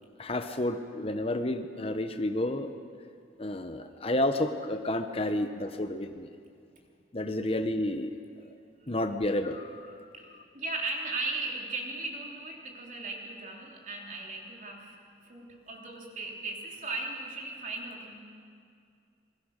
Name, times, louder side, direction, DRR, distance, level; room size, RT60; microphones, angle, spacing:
voice 1, 0.2-2.7 3.4-6.3 7.1-8.1 8.9-9.8, left 1 dB, 30° left, 8 dB, 0.9 m, -30 dB
voice 2, 10.1-18.2, right 3 dB, 40° right, 0 dB, 3.4 m, -37 dB
27.0 x 21.5 x 6.6 m, 2.3 s
head